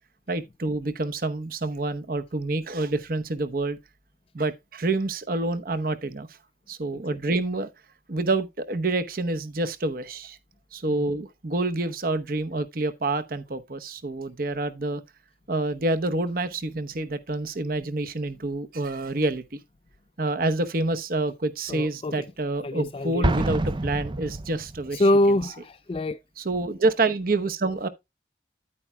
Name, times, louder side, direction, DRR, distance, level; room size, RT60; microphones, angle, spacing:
voice 1, 0.3-3.8 4.3-6.3 6.7-7.7 8.1-10.4 10.7-15.0 15.5-19.4 20.2-25.0 26.4-27.9, right 2 dB, 50° right, 0.9 m, -27 dB
voice 2, 21.7-22.2 22.6-23.3 24.9-26.2, left 1 dB, 30° left, 0.4 m, -24 dB
Explosion, 23.2-25.0, right 2 dB, 25° right, 0.5 m, -27 dB
10.0 x 8.8 x 2.2 m
head